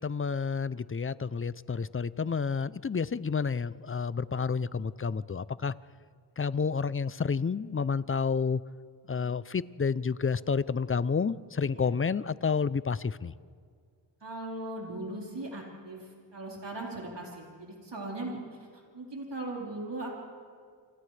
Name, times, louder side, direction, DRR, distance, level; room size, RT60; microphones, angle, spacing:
voice 1, 0.0-5.7 6.4-8.6 9.1-13.3, left 5 dB, 30° left, 18 dB, 0.5 m, -30 dB
voice 2, 14.2-20.2, right 2 dB, 65° right, -3 dB, 4.3 m, -39 dB
29.0 x 27.0 x 3.3 m, 2.1 s
wide cardioid pair, 65°, 45 cm